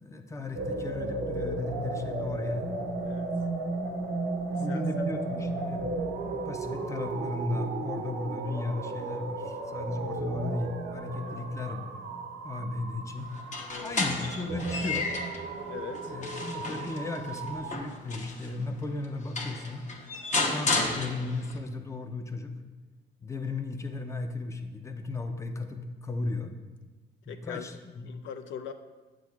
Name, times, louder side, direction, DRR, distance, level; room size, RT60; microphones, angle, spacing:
voice 1, 0.0-2.7 4.6-5.8 6.4-11.9 12.4-13.3 13.8-15.1 16.0-19.8 20.5-22.5 23.2-26.5 27.3-28.1, left 2 dB, 15° left, 6 dB, 0.5 m, -35 dB
sound 1, 0.5-17.8, right 3 dB, 80° right, 0.7 m, -34 dB
voice 2, 3.0-3.3 4.5-5.1 11.3-11.4 13.7-14.0 15.7-16.2 27.3-27.6 28.1-28.7, left 8 dB, 70° left, 8 dB, 0.4 m, -41 dB
sound 2, 13.4-15.4 15.9-18.5 19.0-19.1 19.4-21.6, left 3 dB, 40° left, 0.8 m, -32 dB
7.5 x 6.1 x 2.4 m, 1.2 s
cardioid pair, 90°, 20 cm